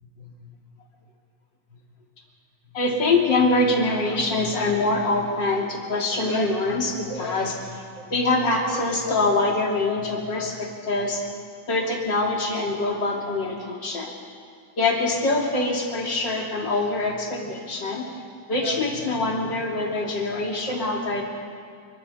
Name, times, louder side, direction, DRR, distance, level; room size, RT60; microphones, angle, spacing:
voice 1, 2.7-7.5 8.0-11.3 11.7-14.1 14.8-18.1 18.5-21.2, left 2 dB, 70° left, 0 dB, 3.5 m, -24 dB
28.5 x 12.5 x 8.3 m, 2.2 s
omnidirectional pair, 2.0 m